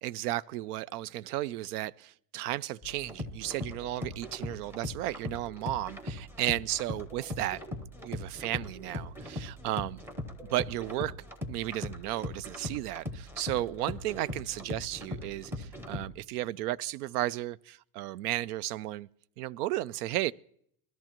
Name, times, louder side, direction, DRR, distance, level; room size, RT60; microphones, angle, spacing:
voice 1, 0.0-7.6 8.0-10.0 10.4-11.2 11.5-19.1 19.4-20.3, right 15 dB, 75° right, 0.5 m, -34 dB
sound 1, 2.8-16.1, left 1 dB, 5° right, 0.7 m, -40 dB
21.5 x 13.5 x 3.0 m
supercardioid pair, 175°, 46 cm